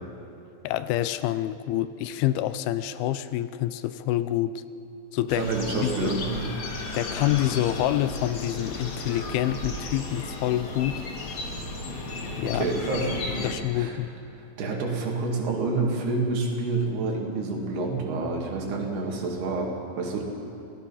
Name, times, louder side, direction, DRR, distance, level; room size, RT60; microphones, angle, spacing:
voice 1, 0.6-4.6 5.1-5.4 5.8-6.1 6.9-10.9 12.4-12.6 13.4-14.1, left 13 dB, 80° left, 13 dB, 2.4 m, -27 dB
sound 1, 5.3-13.5, left 2 dB, 45° left, 2.2 m, -34 dB
voice 2, 5.3-6.5 12.4-13.2 13.7-14.0 14.3-20.2, right 3 dB, 85° right, 0 dB, 4.4 m, -28 dB
27.0 x 18.0 x 5.7 m, 2.7 s
omnidirectional pair, 4.5 m